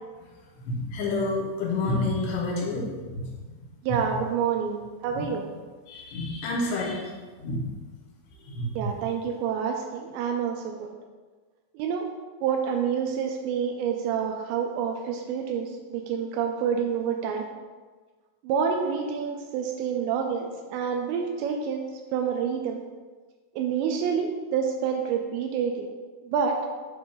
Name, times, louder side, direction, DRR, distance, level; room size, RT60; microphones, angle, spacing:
voice 1, 0.7-3.4 5.2-5.3 5.9-7.1 7.4-7.8 8.5-8.9, left 2 dB, 75° left, -4 dB, 3.0 m, -29 dB
voice 2, 3.8-5.5 8.7-10.9 11.7-12.1 12.4-17.5 18.4-22.8 23.6-25.9 26.2-26.6, right 7 dB, 85° right, 2 dB, 2.8 m, -28 dB
7.2 x 2.6 x 5.3 m, 1.4 s
omnidirectional pair, 5.1 m